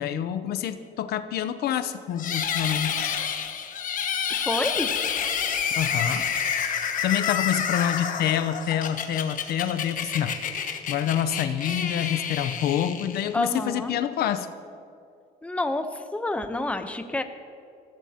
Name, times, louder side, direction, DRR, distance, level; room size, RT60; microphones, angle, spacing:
voice 1, 0.0-3.2 5.8-6.2 6.5-14.5, left 10 dB, 70° left, 11 dB, 0.7 m, -27 dB
sound 1, 2.2-13.5, left 7 dB, 50° left, 1.2 m, -29 dB
voice 2, 4.5-4.9 13.3-14.0 15.4-17.2, left 2 dB, 5° left, 7 dB, 0.8 m, -28 dB
22.0 x 15.0 x 2.9 m, 2.6 s
cardioid pair, 110°, 17 cm